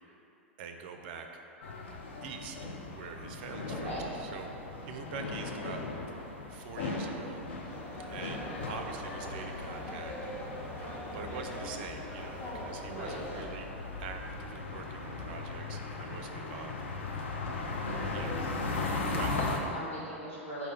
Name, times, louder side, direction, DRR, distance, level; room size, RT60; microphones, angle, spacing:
voice 1, 0.6-1.4 2.2-2.6 2.9-3.9 4.2-4.5 4.8-5.8 6.1-7.8 8.1-10.1 10.8-13.7 14.0-16.7 18.1-18.3 19.0-19.3, right 6 dB, 45° right, 5 dB, 0.4 m, -44 dB
sound 1, 1.6-19.6, left 3 dB, 65° left, 0.5 m, -38 dB
voice 2, 3.7-4.1 12.9-13.2 17.7-18.5 19.3-20.7, right 1 dB, 90° left, -10 dB, 1.5 m, -41 dB
sound 2, 7.7-13.5, equal, 25° left, 0.7 m, -42 dB
4.8 x 2.2 x 4.8 m, 3.0 s
figure-of-eight pair, 95°, 7 cm